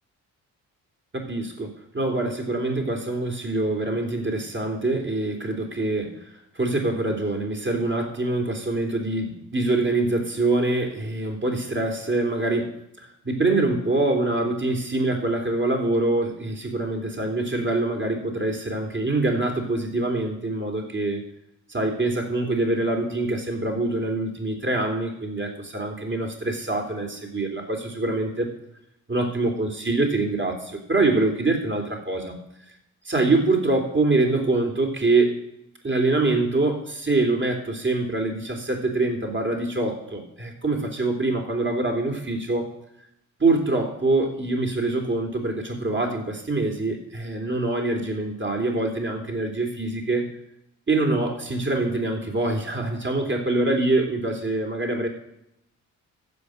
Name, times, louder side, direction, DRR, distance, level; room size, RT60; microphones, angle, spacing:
voice 1, 1.1-6.1 6.6-21.2 21.7-28.5 29.1-32.4 33.1-35.4 35.8-42.7 43.4-50.3 50.9-55.1, right 2 dB, 25° right, 2 dB, 3.5 m, -24 dB
14.5 x 5.5 x 6.5 m, 0.80 s
hypercardioid pair, 45°, 42 cm